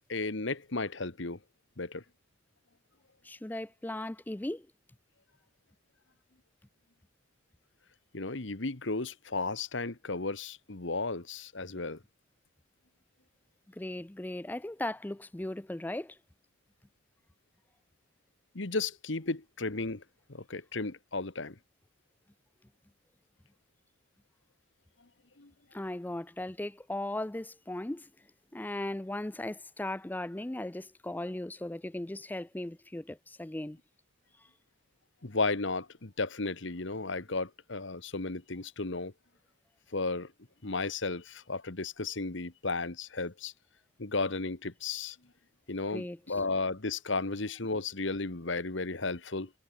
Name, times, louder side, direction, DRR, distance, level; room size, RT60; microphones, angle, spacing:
voice 1, 0.1-1.4 1.8-2.0 8.1-12.0 18.5-20.0 20.3-21.5 25.4-25.5 35.2-39.1 39.9-40.3 40.6-43.5 44.0-45.2 45.7-49.5, left 3 dB, 60° left, 1.5 m, -34 dB
voice 2, 3.2-4.7 13.7-16.2 25.7-28.1 28.5-33.8 45.9-46.4, left 1 dB, 10° left, 0.4 m, -37 dB
head